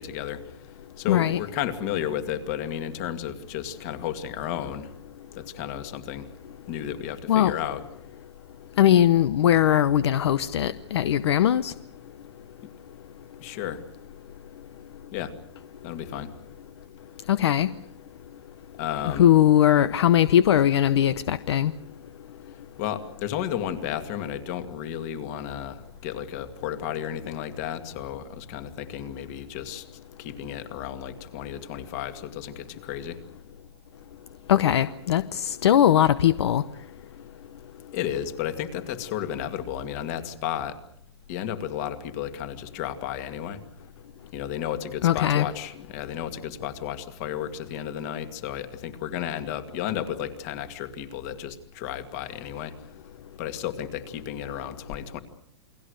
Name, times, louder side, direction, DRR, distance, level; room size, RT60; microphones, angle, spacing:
voice 1, 0.0-4.9 5.3-6.3 6.7-7.8 13.4-13.8 15.1-15.3 15.8-16.3 18.8-19.3 22.5-29.9 30.2-33.2 37.9-40.8 41.3-43.6 44.3-52.7 53.4-55.2, left 10 dB, 35° left, 2.1 m, -33 dB
voice 2, 1.1-1.4 7.3-7.5 8.8-11.7 17.3-17.7 19.2-21.7 34.5-36.6 45.0-45.5, left 11 dB, 65° left, 0.9 m, -20 dB
29.0 x 21.5 x 6.6 m
hypercardioid pair, 170°, 15 cm